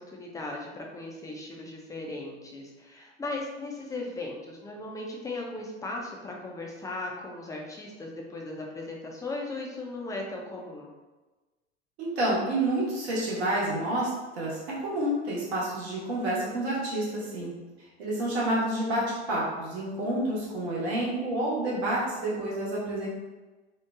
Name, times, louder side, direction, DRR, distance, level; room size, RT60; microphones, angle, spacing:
voice 1, 0.1-10.9, left 2 dB, 10° left, -1 dB, 0.4 m, -37 dB
voice 2, 12.0-17.5 18.0-23.1, right 1 dB, 70° right, -5 dB, 1.0 m, -29 dB
3.0 x 2.1 x 2.3 m, 1.2 s
figure-of-eight pair, 75°, 34 cm